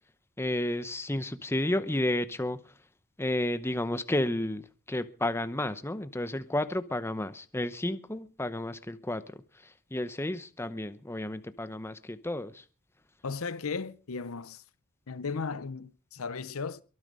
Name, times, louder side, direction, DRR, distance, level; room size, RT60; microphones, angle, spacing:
voice 1, 0.4-2.7 3.2-12.6, left 1 dB, 10° left, 0.8 m, -32 dB
voice 2, 13.2-14.6 15.1-16.8, left 4 dB, 75° left, 0.7 m, -35 dB
23.0 x 9.8 x 5.4 m
head